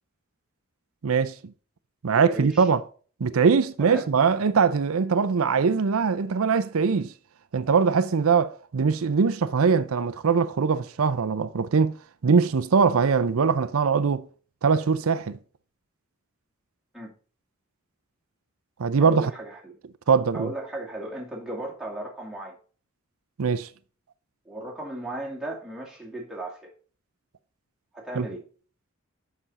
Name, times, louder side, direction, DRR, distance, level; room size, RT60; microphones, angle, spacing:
voice 1, 1.0-1.3 2.0-2.8 3.2-7.1 7.5-11.9 12.2-14.2 14.6-15.4 18.8-19.3 20.1-20.5 23.4-23.7 28.2-28.3, right 5 dB, 85° right, 0.5 m, -22 dB
voice 2, 2.1-2.7 3.8-4.1 16.9-17.1 19.0-19.7 20.3-22.6 24.5-26.7 27.9-28.4, right 1 dB, 5° right, 2.4 m, -36 dB
7.7 x 6.1 x 4.1 m
head